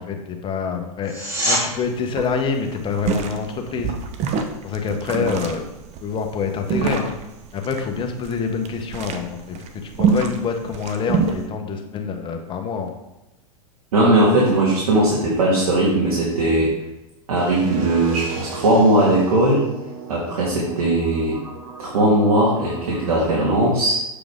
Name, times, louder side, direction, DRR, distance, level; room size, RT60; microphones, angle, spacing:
voice 1, 0.0-4.0 4.6-5.7 6.0-7.1 7.5-12.9, left 5 dB, 25° left, 4 dB, 1.0 m, -26 dB
sound 1, 1.0-1.6 13.0-13.1, equal, 15° right, 2.6 m, -23 dB
sound 2, 1.4-1.5 1.7-1.9 2.1-11.4, right 6 dB, 35° right, 0.9 m, -26 dB
voice 2, 13.9-16.7 17.3-19.6 20.1-21.4 21.8-24.1, right 1 dB, 70° right, -5 dB, 2.2 m, -18 dB
sound 3, 17.4-23.3, right 4 dB, 55° right, 1.6 m, -36 dB
7.6 x 5.0 x 3.7 m, 0.95 s
hypercardioid pair, 110°, 19 cm